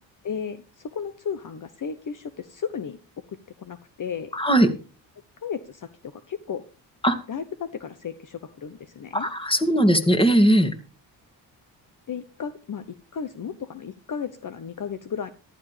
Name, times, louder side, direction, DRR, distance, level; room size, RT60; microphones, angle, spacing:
voice 1, 0.2-3.0 3.6-4.3 5.4-6.6 7.3-9.3 12.1-15.3, left 7 dB, 45° left, 12 dB, 1.1 m, -34 dB
voice 2, 4.3-4.7 7.0-7.2 9.1-10.7, right 1 dB, 10° left, 7 dB, 2.6 m, -19 dB
14.5 x 12.5 x 3.4 m, 0.35 s
supercardioid pair, 60°, 44 cm